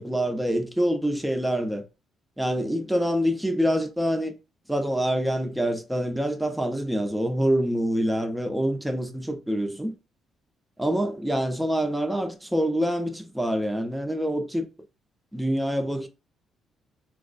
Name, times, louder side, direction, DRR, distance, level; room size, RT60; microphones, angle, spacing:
voice 1, 0.0-1.8 2.4-4.3 4.7-10.0 10.8-14.7 15.3-16.1, equal, 5° right, 0.6 m, -26 dB
4.0 x 2.1 x 2.5 m
cardioid pair, 90°, 0 cm